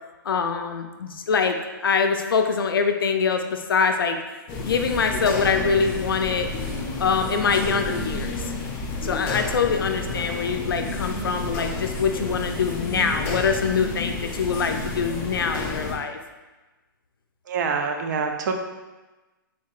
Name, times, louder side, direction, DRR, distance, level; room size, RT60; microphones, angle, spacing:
voice 1, 0.2-4.2 4.6-6.5 7.0-8.4 9.0-16.2, left 5 dB, 85° left, 6 dB, 0.4 m, -24 dB
sound 1, 4.5-15.9, left 3 dB, 25° left, 0.4 m, -30 dB
voice 2, 17.5-18.5, right 5 dB, 55° right, 4 dB, 0.4 m, -25 dB
3.7 x 2.7 x 2.4 m, 1.2 s
hypercardioid pair, 145°, 12 cm